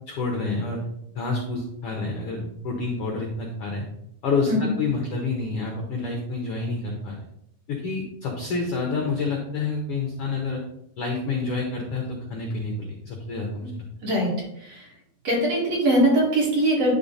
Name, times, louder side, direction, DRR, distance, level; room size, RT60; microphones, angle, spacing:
voice 1, 0.1-0.8 1.1-3.8 4.2-7.2 7.7-10.6 11.0-13.9, left 3 dB, 80° left, 0 dB, 1.3 m, -28 dB
voice 2, 15.2-16.9, right 1 dB, 50° right, -5 dB, 2.9 m, -21 dB
10.5 x 3.5 x 4.0 m, 0.77 s
omnidirectional pair, 4.2 m